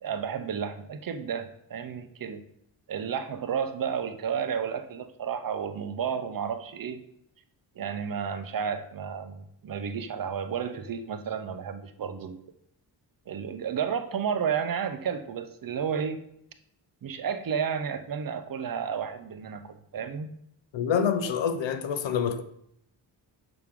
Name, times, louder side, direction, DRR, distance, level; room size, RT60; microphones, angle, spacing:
voice 1, 0.0-2.4 2.9-7.0 7.8-12.4 13.3-16.2 17.0-20.3, right 7 dB, 50° right, 0.7 m, -32 dB
voice 2, 20.7-22.4, left 7 dB, 80° left, 0.7 m, -26 dB
6.5 x 6.0 x 3.7 m
cardioid pair, 100°, 44 cm